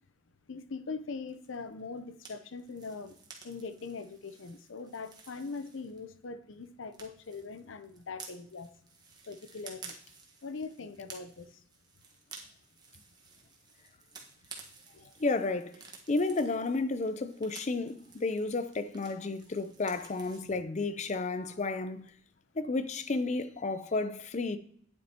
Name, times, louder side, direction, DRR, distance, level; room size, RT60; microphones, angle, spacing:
voice 1, 0.5-3.2 3.4-8.7 9.3-9.9 10.4-11.5 14.9-15.0, left 4 dB, 90° left, 0.6 m, -41 dB
sound 1, 1.3-6.3 6.5-20.4, right 4 dB, 20° right, 1.4 m, -53 dB
voice 2, 15.2-15.7 16.1-22.1 22.6-24.6, left 3 dB, 40° left, 0.5 m, -32 dB
9.6 x 8.6 x 2.9 m
head